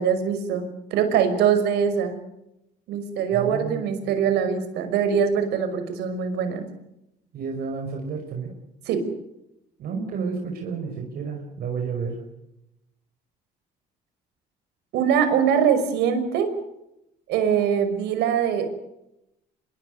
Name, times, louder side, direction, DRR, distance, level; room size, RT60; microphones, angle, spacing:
voice 1, 0.0-2.2 2.9-6.6 8.9-9.0 14.9-16.5 17.3-18.7, right 7 dB, 85° right, 8 dB, 5.7 m, -23 dB
voice 2, 3.3-4.1 7.3-8.5 9.8-12.2, right 5 dB, 65° right, 2 dB, 5.6 m, -31 dB
26.5 x 22.5 x 6.8 m, 0.86 s
cardioid pair, 110°, 17 cm